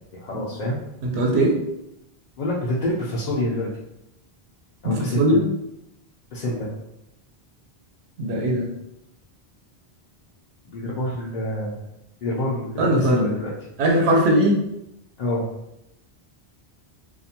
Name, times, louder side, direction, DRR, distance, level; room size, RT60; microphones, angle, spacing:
voice 1, 0.2-0.8 2.4-3.7 4.8-5.3 6.3-6.7 10.6-11.8 12.2-13.5 15.2-15.4, left 1 dB, 55° left, -6 dB, 0.5 m, -27 dB
voice 2, 1.0-1.6 4.8-5.5 8.2-8.7 12.8-13.3 13.8-14.6, right 1 dB, 80° right, -1 dB, 0.9 m, -19 dB
2.5 x 2.1 x 2.8 m, 0.84 s
omnidirectional pair, 1.1 m